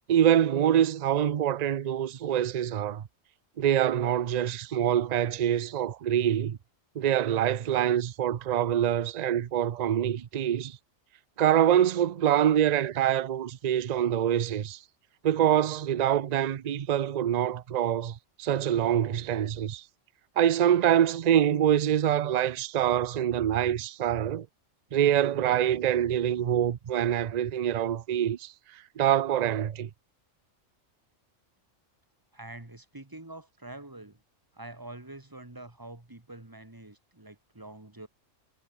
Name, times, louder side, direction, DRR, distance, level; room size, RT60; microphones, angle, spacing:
voice 1, 0.1-3.0 3.6-6.6 7.0-10.8 11.4-14.8 15.2-19.8 20.4-24.5 24.9-29.9, right 10 dB, 50° right, 0.5 m, -25 dB
voice 2, 32.3-34.2 34.5-38.1, right 2 dB, 15° right, 2.0 m, -45 dB
omnidirectional pair, 1.3 m